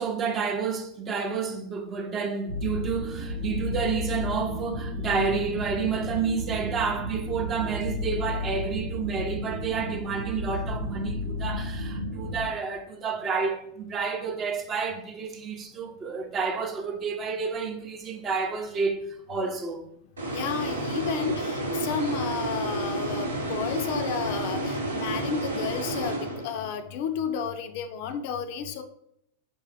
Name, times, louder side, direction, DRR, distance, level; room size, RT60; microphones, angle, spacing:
voice 1, 0.0-19.9, right 5 dB, 25° right, 0.6 m, -30 dB
sound 1, 2.5-12.5, left 1 dB, 90° left, 0.7 m, -33 dB
sound 2, 20.2-26.8, right 2 dB, 75° right, 0.8 m, -30 dB
voice 2, 20.3-28.8, left 7 dB, 50° left, 0.4 m, -32 dB
4.5 x 3.2 x 3.3 m
figure-of-eight pair, 90°, 0 cm